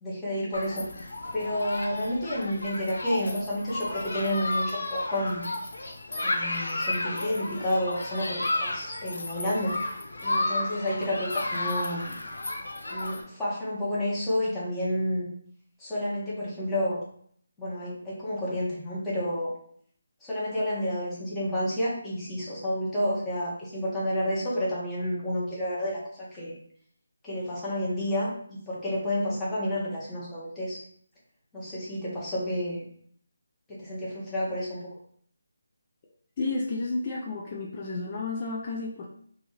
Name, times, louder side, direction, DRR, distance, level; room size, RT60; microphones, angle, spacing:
voice 1, 0.0-0.8 1.3-5.5 6.2-9.7 10.2-12.2 12.9-15.3 15.8-17.0 17.6-19.5 20.2-26.6 27.2-30.8 31.5-32.9 33.7-34.8, left 1 dB, 10° left, -8 dB, 1.2 m, -30 dB
Human group actions, 0.5-13.2, left 2 dB, 70° left, 0.7 m, -32 dB
voice 2, 36.4-39.1, left 3 dB, 30° left, -2 dB, 0.5 m, -31 dB
2.8 x 2.7 x 3.9 m, 0.62 s
figure-of-eight pair, 160°, 0 cm